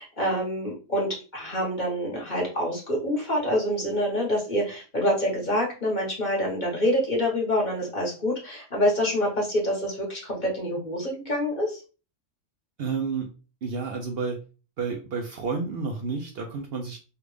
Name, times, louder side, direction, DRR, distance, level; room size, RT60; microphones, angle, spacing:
voice 1, 0.0-11.8, equal, 40° left, -3 dB, 1.3 m, -26 dB
voice 2, 12.8-13.3 13.6-14.4 14.8-17.0, right 4 dB, 60° right, 2 dB, 0.7 m, -30 dB
3.4 x 2.4 x 3.2 m, 0.34 s
omnidirectional pair, 1.3 m